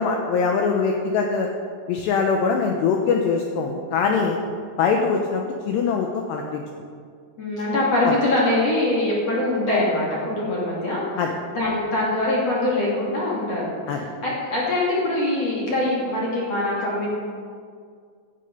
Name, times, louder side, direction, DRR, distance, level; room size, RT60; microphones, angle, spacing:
voice 1, 0.0-1.5 1.9-4.4 4.8-6.6 8.0-8.2 11.2-11.3 13.9-14.1, left 5 dB, 80° left, 2 dB, 2.5 m, -22 dB
voice 2, 7.4-11.0 11.5-13.7 14.2-17.1, left 1 dB, 40° left, -6 dB, 2.9 m, -23 dB
16.5 x 9.7 x 5.3 m, 2.1 s
omnidirectional pair, 5.9 m